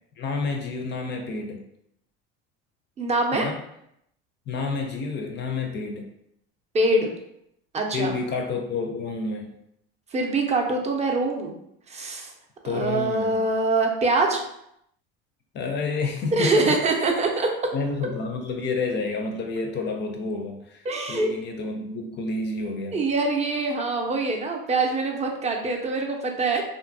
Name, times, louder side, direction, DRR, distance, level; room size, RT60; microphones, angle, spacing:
voice 1, 0.2-1.6 3.3-3.6 4.5-6.1 7.9-9.5 12.6-13.4 15.5-17.0 17.7-20.8 21.1-23.0, left 3 dB, 35° left, 3 dB, 0.4 m, -29 dB
voice 2, 3.0-3.5 6.7-7.1 7.7-8.2 10.1-11.5 11.9-12.3 12.7-14.4 16.3-17.5 20.8-21.3 22.9-26.6, right 2 dB, 20° right, 2 dB, 0.5 m, -24 dB
2.6 x 2.4 x 2.5 m, 0.77 s
supercardioid pair, 90°, 32 cm